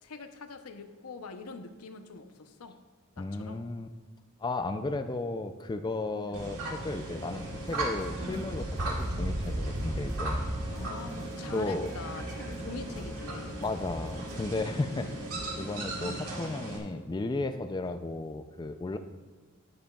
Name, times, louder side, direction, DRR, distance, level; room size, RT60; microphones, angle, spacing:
voice 1, 0.0-2.8 3.2-3.6 6.2-6.4 10.6-13.5 15.0-15.2 16.0-16.3 17.8-17.9, left 4 dB, 85° left, 8 dB, 0.7 m, -44 dB
voice 2, 3.2-3.9 4.4-10.8 11.5-11.9 13.6-15.1 15.6-19.0, left 2 dB, 20° left, 8 dB, 0.3 m, -34 dB
sound 1, 6.3-16.8, right 1 dB, 85° right, 1.8 m, -35 dB
sound 2, 7.7-9.8 10.1-11.6 11.9-14.8, equal, 20° right, 2.2 m, -48 dB
12.0 x 9.9 x 2.3 m, 1.4 s
head